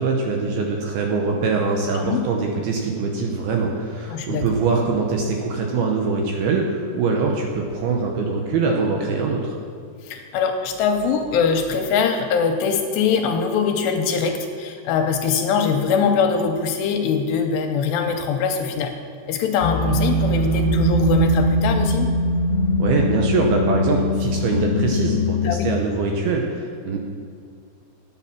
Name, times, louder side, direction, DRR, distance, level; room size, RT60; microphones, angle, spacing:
voice 1, 0.0-9.6 22.8-27.0, right 4 dB, 75° right, 1 dB, 2.4 m, -23 dB
voice 2, 1.9-2.3 4.1-4.5 10.0-18.9 19.3-22.1 25.4-25.8, left 6 dB, 85° left, 5 dB, 2.6 m, -22 dB
sound 1, 19.6-25.5, left 1 dB, 60° left, 1.7 m, -21 dB
9.9 x 8.5 x 6.0 m, 2.2 s
omnidirectional pair, 5.2 m